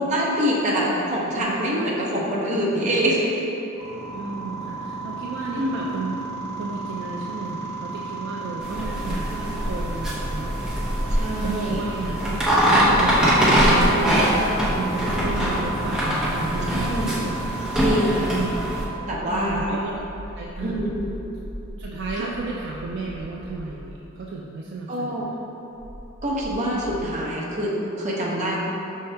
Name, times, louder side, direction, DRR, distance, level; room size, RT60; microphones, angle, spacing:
voice 1, 0.0-3.2 5.6-5.7 11.1-11.8 16.7-17.1 17.8-18.3 19.0-19.8 20.6-21.1 22.2-22.3 24.9-25.2 26.2-28.6, equal, 35° right, -4 dB, 0.7 m, -25 dB
sound 1, 3.8-18.8, right 3 dB, 55° left, 0.8 m, -34 dB
voice 2, 4.1-6.2 6.6-10.8 11.2-17.4 18.3-18.5 19.3-20.0 20.3-20.8 21.8-25.4, right 3 dB, 55° right, -3 dB, 0.3 m, -33 dB
sound 2, 8.6-18.8, equal, 5° right, 0.7 m, -22 dB
sound 3, 11.6-11.7 13.2-13.7 15.0-15.7 17.6-24.4 25.7-27.0, equal, 70° left, 1.2 m, -39 dB
5.6 x 2.8 x 3.3 m, 2.9 s
head